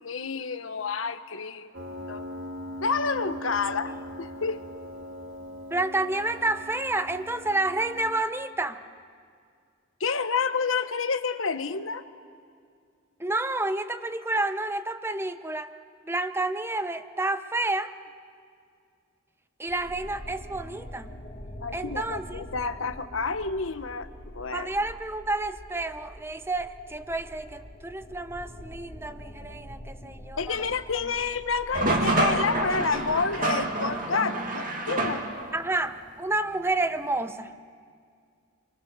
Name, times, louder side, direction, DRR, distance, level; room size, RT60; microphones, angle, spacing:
voice 1, 0.0-1.7 2.1-2.3 2.8-4.6 10.0-12.0 21.6-24.1 24.3-24.7 30.4-35.2, left 4 dB, 85° left, 10 dB, 1.1 m, -29 dB
Piano, 1.7-8.2, equal, 85° right, 2.2 m, -40 dB
voice 2, 5.7-8.8 13.2-15.7 16.0-17.9 19.6-21.1 21.7-22.4 24.5-30.7 31.0-31.1 35.5-37.5, right 2 dB, 10° right, 10 dB, 0.8 m, -30 dB
sound 1, 19.7-33.3, equal, 35° left, 2.0 m, -45 dB
sound 2, 31.7-35.7, right 2 dB, 45° right, 2.1 m, -27 dB
30.0 x 24.0 x 6.8 m, 2.2 s
head